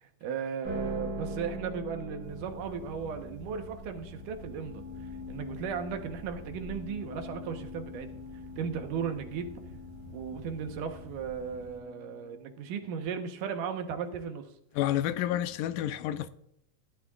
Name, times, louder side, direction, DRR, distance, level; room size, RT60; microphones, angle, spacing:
voice 1, 0.0-8.2 8.6-9.5 10.1-14.5, right 7 dB, 80° right, 2.7 m, -36 dB
sound 1, 0.6-13.0, left 1 dB, 35° right, 2.7 m, -43 dB
sound 2, 2.2-11.8, left 1 dB, 50° left, 6.5 m, -48 dB
voice 2, 14.8-16.3, left 12 dB, 85° left, 2.2 m, -29 dB
17.5 x 11.5 x 2.4 m
omnidirectional pair, 3.7 m